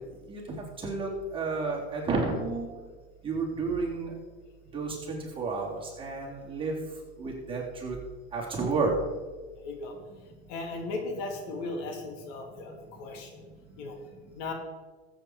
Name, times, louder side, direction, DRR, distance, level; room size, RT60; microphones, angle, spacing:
voice 1, 0.8-2.7 3.2-4.1 4.7-6.7 7.2-8.0 8.3-8.9, right 4 dB, 15° right, -4 dB, 3.6 m, -31 dB
voice 2, 9.5-9.9 10.5-13.4 13.8-14.0 14.3-14.5, left 3 dB, 55° left, 4 dB, 2.2 m, -37 dB
13.5 x 8.4 x 4.6 m, 1.4 s
hypercardioid pair, 115°, 32 cm